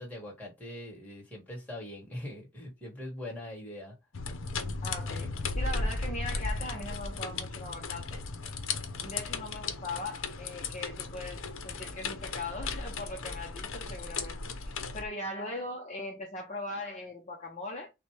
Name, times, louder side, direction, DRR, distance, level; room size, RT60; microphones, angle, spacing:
voice 1, 0.0-3.9, left 1 dB, 5° left, 1.7 m, -42 dB
sound 1, 4.1-15.1, left 3 dB, 65° left, 0.8 m, -36 dB
voice 2, 4.8-8.2 9.0-17.9, left 2 dB, 30° left, 0.8 m, -40 dB
6.5 x 2.2 x 3.2 m
head